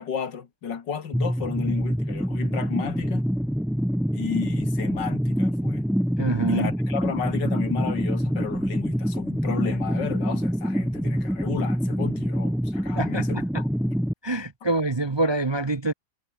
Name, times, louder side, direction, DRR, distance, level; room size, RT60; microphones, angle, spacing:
voice 1, 0.0-3.3 4.1-5.8 6.5-14.0, left 7 dB, 90° left, 2.6 m, -33 dB
sound 1, 1.1-14.1, equal, ahead, 0.7 m, -26 dB
voice 2, 6.2-6.7 13.0-13.4 14.2-15.9, right 2 dB, 35° right, 0.4 m, -25 dB
omnidirectional pair, 1.8 m